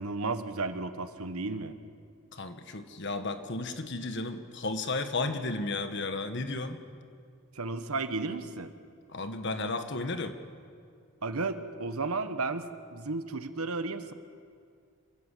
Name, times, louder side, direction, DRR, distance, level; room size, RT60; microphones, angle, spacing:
voice 1, 0.0-1.7 7.5-8.7 11.2-14.1, right 3 dB, 80° right, 10 dB, 1.2 m, -33 dB
voice 2, 2.3-6.8 9.1-10.4, left 3 dB, 55° left, 8 dB, 1.4 m, -33 dB
26.5 x 13.5 x 8.4 m, 2.2 s
head